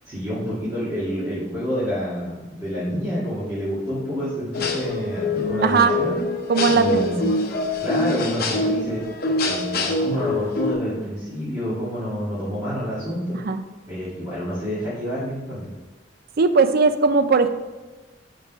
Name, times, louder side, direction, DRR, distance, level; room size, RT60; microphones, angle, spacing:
voice 1, 0.0-6.1 6.7-7.2 7.8-9.0 9.4-13.4 13.9-15.7, equal, 20° right, -12 dB, 2.2 m, -28 dB
sound 1, 4.5-10.7, left 2 dB, 55° left, 0.8 m, -25 dB
voice 2, 5.6-5.9 6.5-7.4 13.5-13.6 16.4-17.5, right 4 dB, 55° right, 9 dB, 0.5 m, -19 dB
5.7 x 5.2 x 4.8 m, 1.2 s
head